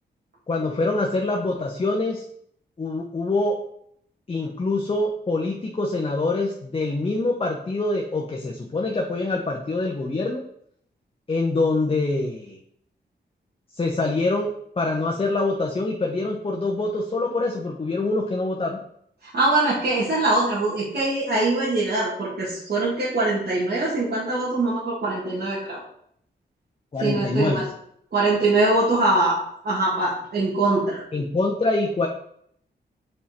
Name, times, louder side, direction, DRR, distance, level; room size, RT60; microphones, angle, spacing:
voice 1, 0.5-2.2 2.8-3.6 4.3-10.4 11.3-12.6 13.7-18.8 26.9-27.6 31.1-32.1, left 2 dB, 30° left, 1 dB, 0.8 m, -25 dB
voice 2, 19.2-25.8 27.0-27.6 28.1-31.0, right 2 dB, 55° right, -8 dB, 1.9 m, -23 dB
5.4 x 4.3 x 4.2 m, 0.68 s
cardioid pair, 85°, 19 cm